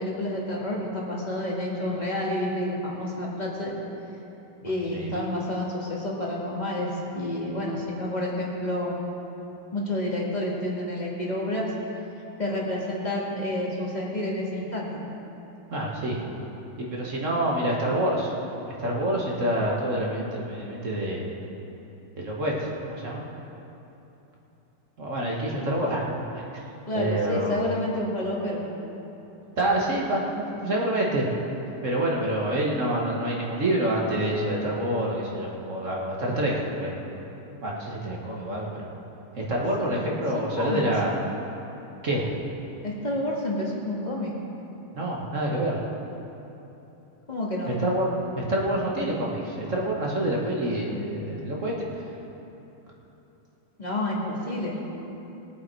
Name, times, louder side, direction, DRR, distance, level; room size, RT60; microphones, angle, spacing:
voice 1, 0.0-3.7 4.6-9.0 9.7-11.7 12.4-14.9 26.9-28.6 40.3-40.9 42.8-44.4 47.3-47.7 53.8-54.8, left 1 dB, 20° left, -4 dB, 2.1 m, -29 dB
voice 2, 4.6-5.1 15.7-16.2 16.8-18.3 18.7-21.4 22.2-23.3 25.0-26.4 26.9-27.6 29.6-31.3 31.8-37.2 37.6-38.9 39.3-41.1 42.0-42.3 44.9-45.8 47.7-48.1 48.4-52.0, right 1 dB, 40° right, -3 dB, 1.9 m, -27 dB
21.5 x 7.7 x 4.7 m, 3.0 s
omnidirectional pair, 2.4 m